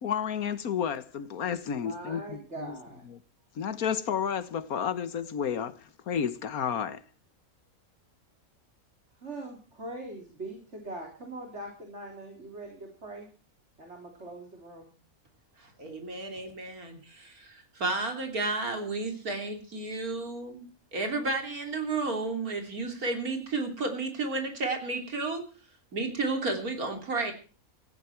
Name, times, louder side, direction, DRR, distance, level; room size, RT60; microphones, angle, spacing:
voice 1, 0.0-2.7 3.5-7.0, left 8 dB, 85° left, 1.6 m, -31 dB
voice 2, 1.7-3.1 9.2-13.3 13.8-14.9, right 2 dB, 50° right, 4.2 m, -42 dB
voice 3, 15.8-20.6 20.9-25.4 25.9-27.3, right 3 dB, 90° right, 3.6 m, -32 dB
18.0 x 15.5 x 4.6 m
omnidirectional pair, 1.5 m